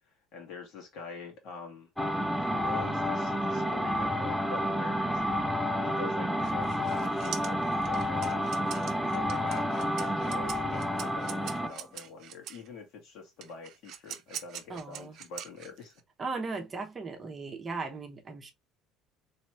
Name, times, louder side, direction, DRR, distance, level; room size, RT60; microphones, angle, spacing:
voice 1, 0.3-1.9 2.4-5.2 5.7-8.5 9.1-15.9, left 4 dB, 60° left, 1.7 m, -45 dB
sound 1, 2.0-11.8, equal, ahead, 0.5 m, -30 dB
sound 2, 6.4-12.7 13.4-16.0, right 10 dB, 55° right, 0.6 m, -43 dB
voice 2, 14.7-15.2 16.2-18.5, right 4 dB, 20° right, 0.8 m, -37 dB
3.2 x 3.0 x 3.0 m
cardioid pair, 140°, 0 cm